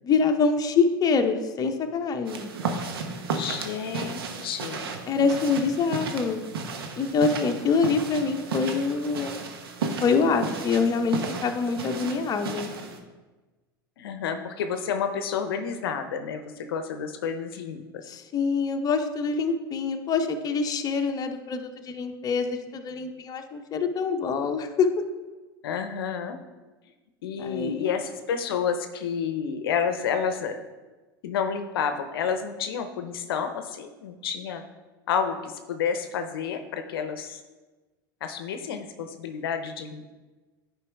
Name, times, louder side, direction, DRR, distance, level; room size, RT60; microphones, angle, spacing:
voice 1, 0.0-2.5 5.1-6.5 7.0-9.4 10.0-12.7 18.1-24.9 27.4-27.9, left 5 dB, 30° left, 5 dB, 0.8 m, -25 dB
sound 1, 2.2-13.0, right 4 dB, 80° right, 0.9 m, -34 dB
voice 2, 3.3-5.0 14.0-18.0 25.6-26.4 27.2-30.6 31.2-34.6 35.1-37.4 38.2-40.0, left 7 dB, 75° left, 8 dB, 0.7 m, -30 dB
9.7 x 4.6 x 3.4 m, 1.2 s
hypercardioid pair, 90°, 12 cm